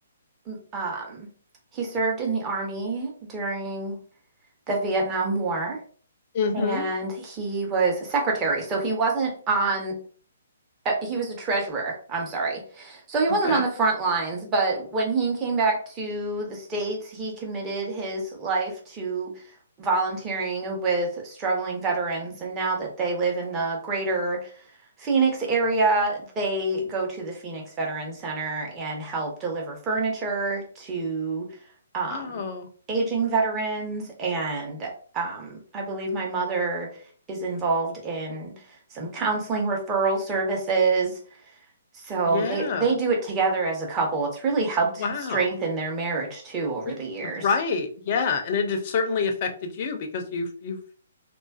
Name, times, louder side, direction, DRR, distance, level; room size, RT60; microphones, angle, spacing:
voice 1, 0.5-1.3 1.7-4.0 4.7-5.8 6.5-10.0 10.8-19.3 19.8-24.5 25.0-31.5 31.9-32.5 32.9-36.9 37.3-38.5 38.9-41.1 42.0-45.0 45.3-47.4, right 3 dB, 25° right, 0 dB, 0.9 m, -27 dB
voice 2, 6.3-6.8 13.4-13.6 32.1-32.7 42.3-42.9 45.0-45.5 46.8-46.9 47.2-50.9, left 5 dB, 40° left, 5 dB, 0.5 m, -27 dB
2.4 x 2.4 x 2.3 m, 0.43 s
figure-of-eight pair, 130°, 0 cm